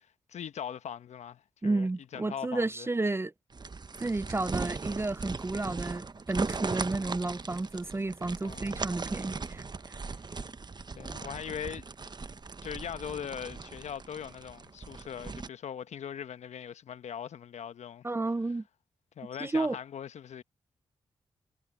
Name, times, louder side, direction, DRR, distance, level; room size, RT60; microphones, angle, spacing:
voice 1, 0.0-2.9 8.3-8.9 10.0-10.2 10.9-11.9 12.6-18.1 19.2-20.4, left 8 dB, 75° left, 1.2 m, -41 dB
voice 2, 1.6-3.3 4.0-10.0 18.0-18.6 19.4-19.8, right 2 dB, 20° right, 0.5 m, -32 dB
sound 1, 3.5-15.5, right 4 dB, 35° right, 1.0 m, -39 dB
supercardioid pair, 40°, 12 cm